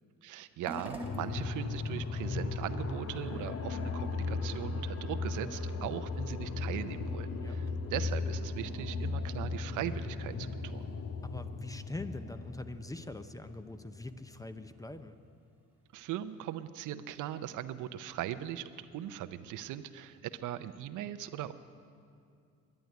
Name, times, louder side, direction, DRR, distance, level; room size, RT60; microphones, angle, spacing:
voice 1, 0.2-10.9 15.9-21.5, right 11 dB, 85° right, 11 dB, 0.6 m, -39 dB
sound 1, 0.6-19.2, right 1 dB, 5° right, 1.9 m, -55 dB
sound 2, 1.0-14.7, left 4 dB, 55° left, 0.9 m, -37 dB
voice 2, 11.2-15.1, left 2 dB, 10° left, 10 dB, 0.6 m, -43 dB
11.0 x 10.5 x 9.3 m, 2.4 s
cardioid pair, 90°, 30 cm